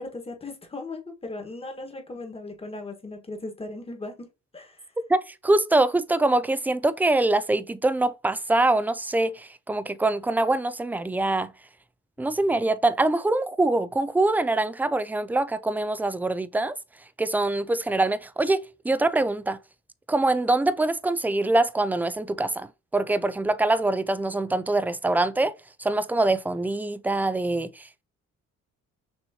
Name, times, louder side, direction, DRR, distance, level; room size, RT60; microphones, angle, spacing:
voice 1, 0.0-4.3 4.5-4.8, left 2 dB, 20° left, 1.6 m, -37 dB
voice 2, 5.1-11.5 12.2-16.7 17.2-19.6 20.1-22.7 22.9-25.5 25.8-28.0, right 2 dB, 5° right, 0.3 m, -24 dB
6.2 x 3.0 x 2.8 m
cardioid pair, 90°, 30 cm